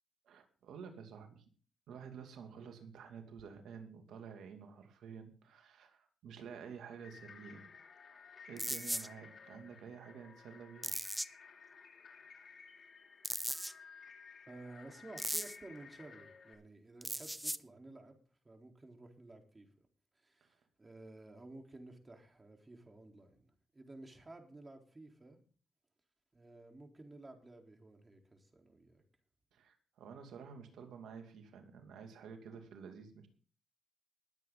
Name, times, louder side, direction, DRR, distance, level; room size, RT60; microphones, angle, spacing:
voice 1, 0.2-1.4 1.9-7.7 8.5-11.0 20.4-20.5 29.5-33.3, right 6 dB, 85° right, 5 dB, 2.5 m, -51 dB
sound 1, 6.9-16.5, left 5 dB, 60° left, 3.0 m, -56 dB
sound 2, 8.6-9.1 10.8-11.3 13.2-13.7 15.2-15.6 17.0-17.6, equal, 5° right, 0.8 m, -37 dB
voice 2, 14.5-18.2 18.4-19.7 20.2-25.4 26.3-29.0, right 2 dB, 30° right, 3 dB, 3.9 m, -54 dB
21.0 x 8.4 x 3.9 m, 0.40 s
supercardioid pair, 55°, 0 cm